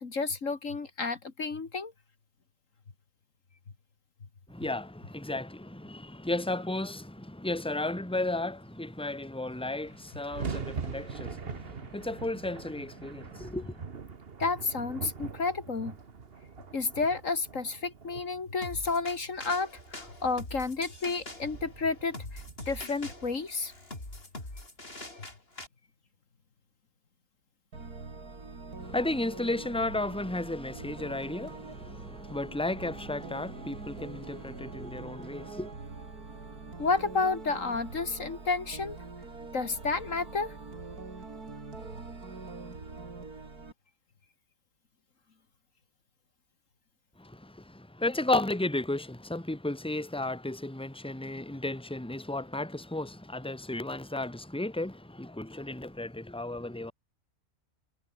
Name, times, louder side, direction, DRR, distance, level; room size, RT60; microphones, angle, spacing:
voice 1, 0.0-1.9 14.4-15.9 16.7-23.7 36.8-39.0 39.5-40.5, left 4 dB, 55° left, 2.4 m, -31 dB
voice 2, 4.5-13.8 28.8-35.7 47.2-56.9, left 2 dB, 5° left, 2.4 m, -34 dB
sound 1, 9.2-9.3 9.4-23.8, right 5 dB, 40° right, 1.5 m, -43 dB
sound 2, 18.6-25.7, left 2 dB, 40° left, 5.7 m, -44 dB
sound 3, 27.7-43.7, right 3 dB, 85° right, 4.1 m, -44 dB
omnidirectional pair, 1.6 m